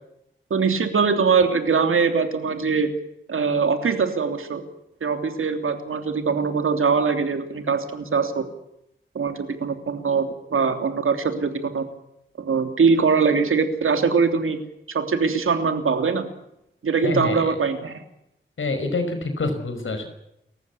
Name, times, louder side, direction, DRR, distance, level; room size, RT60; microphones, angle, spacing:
voice 1, 0.5-2.9 3.3-4.6 5.0-8.5 9.1-10.3 10.5-11.8 12.4-14.6 14.9-16.3 16.8-18.0, right 5 dB, 90° right, 7 dB, 3.1 m, -22 dB
voice 2, 17.0-17.6 18.6-20.1, left 3 dB, 75° left, 7 dB, 5.6 m, -26 dB
29.5 x 15.0 x 8.5 m, 0.82 s
wide cardioid pair, 70°, 21 cm